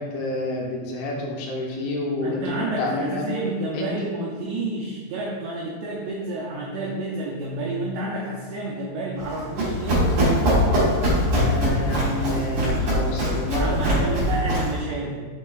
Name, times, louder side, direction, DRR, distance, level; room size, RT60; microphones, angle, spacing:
voice 1, 0.0-3.3 3.7-3.9 11.4-14.0, left 1 dB, 80° left, -1 dB, 3.2 m, -28 dB
voice 2, 2.2-10.2 13.5-15.2, right 2 dB, 85° right, -4 dB, 2.4 m, -30 dB
Run, 9.2-14.8, equal, 50° right, 2.0 m, -22 dB
7.2 x 6.5 x 2.3 m, 1.5 s
omnidirectional pair, 5.8 m